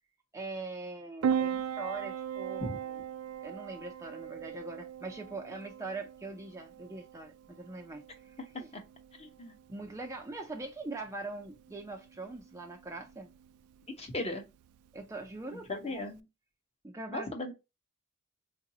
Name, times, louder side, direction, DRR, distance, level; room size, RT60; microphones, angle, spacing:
voice 1, 0.3-3.0 3.4-8.7 9.7-13.3 14.9-16.0 16.8-17.3, right 3 dB, 15° right, 0.4 m, -42 dB
Piano, 1.2-16.2, right 8 dB, 85° right, 0.3 m, -39 dB
voice 2, 9.2-9.5 14.0-14.4 15.7-16.2 17.1-17.5, left 2 dB, 30° left, 0.8 m, -37 dB
3.9 x 2.5 x 2.7 m
head